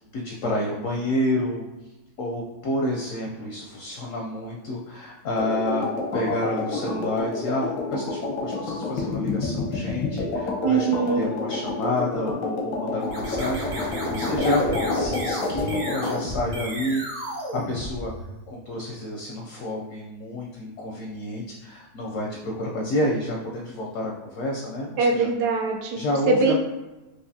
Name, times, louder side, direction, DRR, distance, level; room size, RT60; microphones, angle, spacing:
voice 1, 0.0-1.6 2.2-5.9 6.1-14.6 14.9-18.1 18.5-25.3 26.0-26.5, left 1 dB, 70° left, -1 dB, 0.7 m, -29 dB
sound 1, 5.4-16.2, left 3 dB, 90° left, 1.4 m, -28 dB
voice 2, 10.6-11.3 25.0-26.5, right 4 dB, 75° right, 2 dB, 1.1 m, -22 dB
sound 2, 13.0-18.5, right 1 dB, 45° right, 0.7 m, -33 dB
4.8 x 2.5 x 2.7 m, 1.1 s
omnidirectional pair, 1.8 m